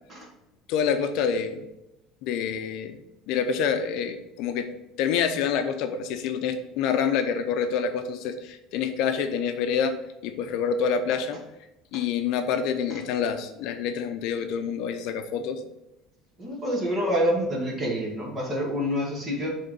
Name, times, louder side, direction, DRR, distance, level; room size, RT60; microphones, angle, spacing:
voice 1, 0.7-1.6 2.2-3.0 3.3-4.7 5.0-9.9 10.2-11.4 11.9-15.6, left 7 dB, 65° left, 7 dB, 0.6 m, -27 dB
voice 2, 16.4-19.5, equal, 25° right, -1 dB, 2.0 m, -27 dB
6.6 x 3.7 x 5.4 m, 0.92 s
cardioid pair, 145°, 0 cm